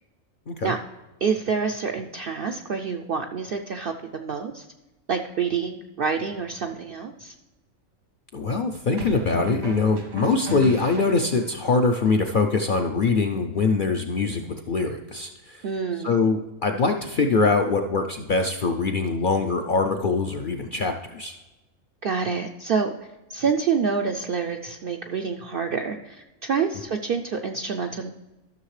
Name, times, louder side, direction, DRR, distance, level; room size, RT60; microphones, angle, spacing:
voice 1, 1.2-4.7 5.1-7.3 15.6-16.1 22.0-22.9 23.3-28.1, right 6 dB, 70° right, 5 dB, 0.5 m, -27 dB
sound 1, 6.3-6.6 9.0-11.6, equal, 90° right, 1.8 m, -34 dB
voice 2, 8.3-15.7 16.0-21.4, left 4 dB, 60° left, 4 dB, 0.5 m, -23 dB
13.5 x 6.4 x 3.2 m, 1.0 s
omnidirectional pair, 1.4 m